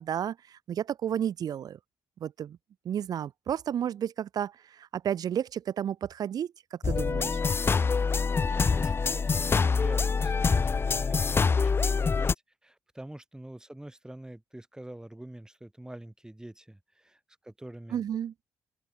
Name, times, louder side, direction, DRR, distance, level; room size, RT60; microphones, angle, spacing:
voice 1, 0.0-1.8 2.2-2.6 2.8-7.4 17.9-18.3, right 9 dB, 65° right, 0.9 m, -32 dB
sound 1, 6.8-12.3, left 5 dB, 35° left, 0.5 m, -25 dB
voice 2, 8.0-12.3 12.6-18.0, right 1 dB, 10° right, 3.1 m, -45 dB
open air
supercardioid pair, 60°, 7 cm